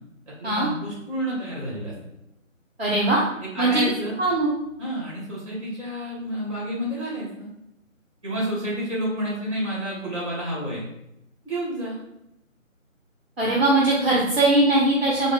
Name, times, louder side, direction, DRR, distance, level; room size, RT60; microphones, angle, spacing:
voice 1, 0.3-1.9 3.4-4.2 4.8-7.5 8.2-10.9 11.4-12.0, equal, 25° right, -5 dB, 1.4 m, -30 dB
voice 2, 2.8-3.2 3.6-3.8 4.2-4.5 13.4-15.3, right 2 dB, 50° right, -5 dB, 0.8 m, -20 dB
3.4 x 2.4 x 3.6 m, 0.84 s
figure-of-eight pair, 160°, 40 cm